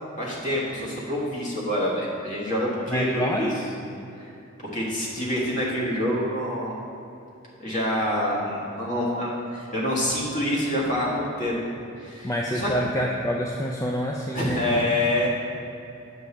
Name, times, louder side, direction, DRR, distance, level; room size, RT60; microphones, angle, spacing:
voice 1, 0.2-3.5 4.2-4.3 4.7-6.8 7.6-11.5 12.0-12.7 14.3-15.3, left 1 dB, 40° left, -5 dB, 1.6 m, -26 dB
voice 2, 2.9-3.5 12.2-14.8, equal, 15° left, -1 dB, 0.4 m, -27 dB
7.1 x 6.8 x 3.3 m, 2.7 s
head